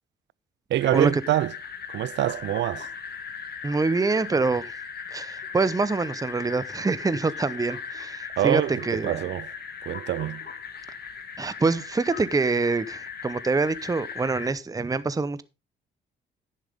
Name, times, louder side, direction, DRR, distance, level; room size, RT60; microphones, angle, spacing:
voice 1, 0.7-1.5 1.9-2.9 8.4-9.5 9.8-10.5, right 13 dB, 65° right, 0.5 m, -25 dB
sound 1, 0.8-14.5, left 6 dB, 55° left, 2.1 m, -38 dB
voice 2, 3.6-4.8 5.1-9.2 11.4-15.4, right 3 dB, 20° right, 0.8 m, -25 dB
10.5 x 10.0 x 3.5 m
cardioid pair, 90°, 20 cm